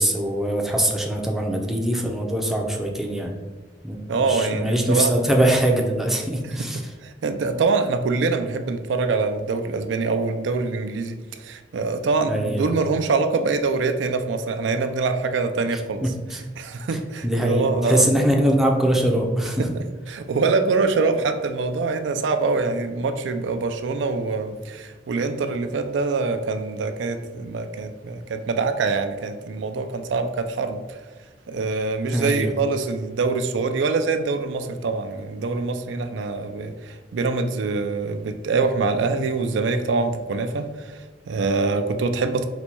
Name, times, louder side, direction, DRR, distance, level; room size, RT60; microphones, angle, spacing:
voice 1, 0.0-3.3 3.8-6.8 12.3-12.7 16.3-16.4 17.2-19.7 32.1-32.5, right 1 dB, ahead, 0 dB, 0.4 m, -22 dB
voice 2, 4.1-5.1 6.4-6.6 7.0-16.0 16.3-18.2 19.6-19.7 20.1-31.0 31.5-42.4, right 4 dB, 80° right, 8 dB, 0.4 m, -24 dB
4.0 x 2.2 x 4.4 m, 1.3 s
head